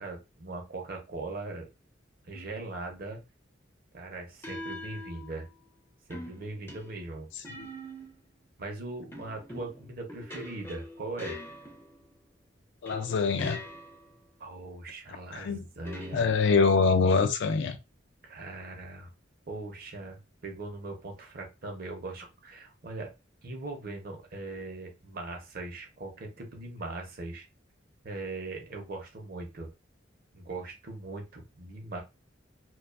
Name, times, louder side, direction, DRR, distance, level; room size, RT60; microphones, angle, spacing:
voice 1, 0.0-1.7 2.2-3.2 3.9-5.5 6.1-7.3 8.6-11.4 14.4-16.3 18.2-19.1 19.5-23.1 23.4-27.5 28.0-29.7 30.3-32.0, right 2 dB, 50° right, 0.7 m, -40 dB
sound 1, 2.3-2.7 4.4-5.7 6.1-8.3 9.1-12.1 12.9-14.1 15.8-16.7, left 1 dB, 15° left, 0.4 m, -44 dB
voice 2, 12.8-13.6 15.3-15.7 16.1-17.8, left 4 dB, 70° left, 0.4 m, -24 dB
2.3 x 2.3 x 2.3 m
head